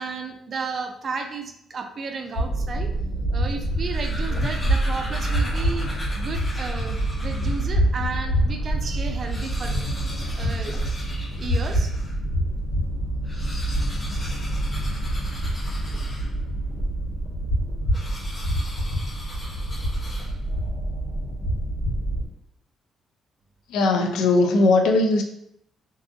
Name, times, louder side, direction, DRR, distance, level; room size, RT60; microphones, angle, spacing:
voice 1, 0.0-2.9 3.3-5.9 6.1-9.8 10.3-10.9 11.4-11.9 23.9-24.2, right 4 dB, 45° right, 5 dB, 0.4 m, -33 dB
sound 1, 2.4-22.3, right 1 dB, 70° left, 1.4 m, -26 dB
sound 2, 3.8-7.8 8.4-8.5 8.7-8.8 9.1-12.2 13.2-16.6 17.9-20.6, left 1 dB, 30° left, 0.7 m, -39 dB
voice 2, 23.7-25.2, left 2 dB, 90° left, 4 dB, 0.4 m, -19 dB
2.6 x 2.5 x 2.4 m, 0.75 s
cardioid pair, 90°, 0 cm